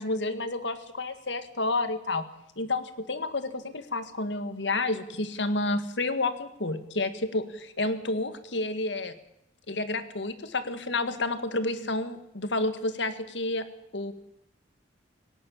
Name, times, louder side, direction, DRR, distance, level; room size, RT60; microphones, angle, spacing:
voice 1, 0.0-2.2 2.6-9.2 9.7-13.7 13.9-14.1, left 2 dB, 80° left, 11 dB, 1.9 m, -30 dB
18.5 x 17.5 x 8.6 m, 0.82 s
head